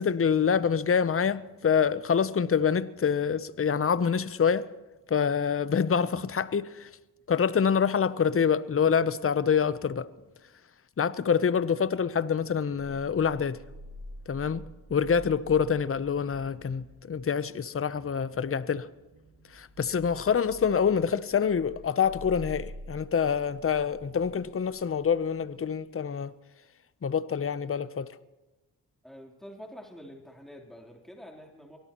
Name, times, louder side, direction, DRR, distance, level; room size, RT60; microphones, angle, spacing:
voice 1, 0.0-4.7 5.1-6.9 7.3-10.1 11.0-13.6 14.3-14.6 14.9-18.9 19.5-26.3 27.0-28.1, left 7 dB, 35° left, 0.8 m, -26 dB
sound 1, 12.8-25.4, equal, 80° right, 3.4 m, -48 dB
voice 2, 29.0-31.8, equal, ahead, 3.5 m, -47 dB
24.0 x 17.5 x 3.0 m
supercardioid pair, 45°, 40 cm